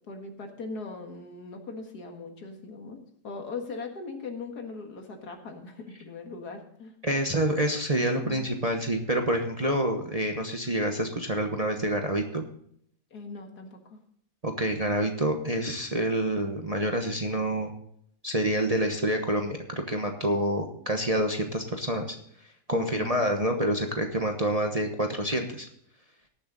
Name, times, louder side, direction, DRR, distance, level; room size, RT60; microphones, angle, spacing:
voice 1, 0.0-3.0 3.2-6.9 8.2-8.5 13.1-14.0 22.7-23.2, left 4 dB, 70° left, 4 dB, 2.3 m, -40 dB
voice 2, 7.0-12.4 14.4-17.7 18.2-22.1 22.7-25.7, right 1 dB, 25° right, 3 dB, 1.0 m, -27 dB
18.5 x 7.1 x 4.0 m, 0.67 s
omnidirectional pair, 1.8 m